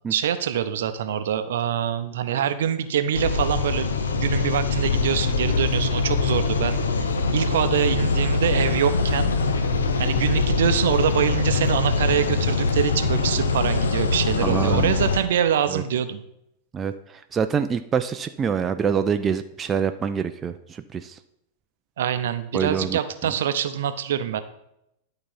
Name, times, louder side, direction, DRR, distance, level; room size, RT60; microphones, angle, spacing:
voice 1, 0.1-9.3 10.0-16.2 22.0-24.4, right 9 dB, 60° right, 10 dB, 0.6 m, -25 dB
sound 1, 3.1-15.2, left 4 dB, 70° left, 0.8 m, -23 dB
voice 2, 14.4-14.9 15.7-15.8 16.7-21.2 22.5-23.0, right 7 dB, 20° right, 8 dB, 0.4 m, -26 dB
11.0 x 4.0 x 5.4 m, 0.80 s
figure-of-eight pair, 90°, 0 cm